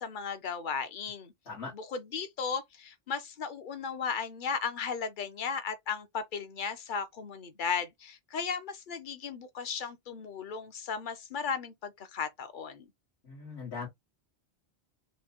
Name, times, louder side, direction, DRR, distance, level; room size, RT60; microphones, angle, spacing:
voice 1, 0.0-1.3 1.7-12.8, left 6 dB, 50° left, 0.9 m, -35 dB
voice 2, 13.2-13.9, left 4 dB, 75° left, 2.0 m, -39 dB
5.1 x 2.2 x 4.3 m
omnidirectional pair, 1.1 m